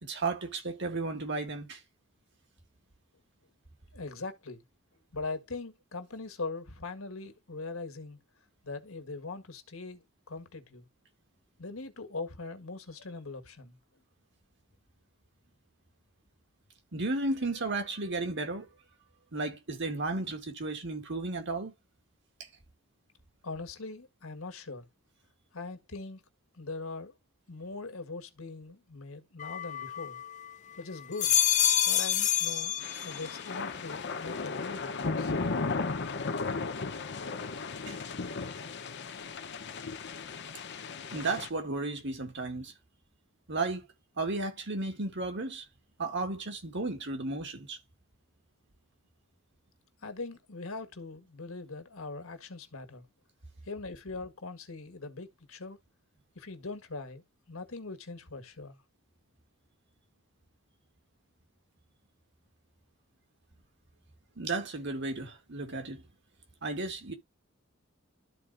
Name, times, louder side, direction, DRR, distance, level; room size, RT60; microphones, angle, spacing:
voice 1, 0.0-1.8 16.9-18.7 19.3-21.7 22.4-22.5 37.9-38.0 41.1-42.7 43.5-43.9 44.2-45.6 46.0-47.8 64.4-66.0 66.6-67.1, right 3 dB, 60° right, 2.2 m, -34 dB
voice 2, 3.9-4.6 5.1-8.2 8.6-10.9 11.6-13.8 23.4-24.9 25.5-26.2 26.5-27.1 27.5-30.2 30.8-31.4 31.9-35.3 50.0-53.1 53.7-55.8 56.4-58.8, left 3 dB, 80° left, 1.8 m, -41 dB
sound 1, 29.4-30.5 31.0-33.4 33.8-34.4, left 10 dB, 35° left, 0.5 m, -28 dB
sound 2, 32.8-41.5, left 4 dB, 55° left, 0.9 m, -35 dB
13.0 x 4.5 x 2.6 m
head